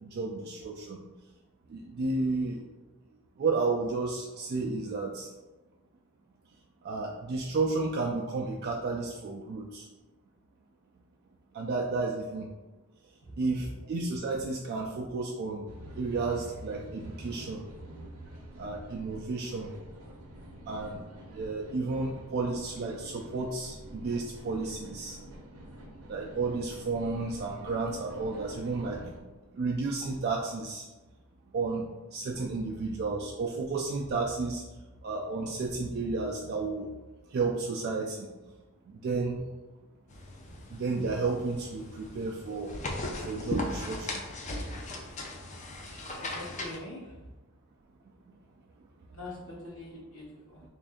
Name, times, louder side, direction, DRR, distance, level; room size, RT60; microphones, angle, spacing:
voice 1, 0.0-1.0 1.7-2.6 3.4-5.3 6.8-9.9 11.5-12.5 13.4-15.7 16.0-17.6 18.6-19.7 20.7-21.0 21.3-25.2 26.1-29.0 29.6-30.9 31.5-31.8 32.1-34.6 35.0-36.9 37.3-38.3 39.0-39.4 40.7-42.8 43.2-44.2, right 3 dB, 45° right, -1 dB, 0.3 m, -32 dB
sound 1, 15.7-29.2, right 1 dB, 70° right, 0.7 m, -47 dB
sound 2, 40.1-46.8, left 2 dB, 35° left, 0.4 m, -38 dB
voice 2, 46.3-47.2 49.1-50.6, left 2 dB, 60° left, -5 dB, 1.2 m, -43 dB
3.3 x 2.6 x 3.5 m, 1.1 s
head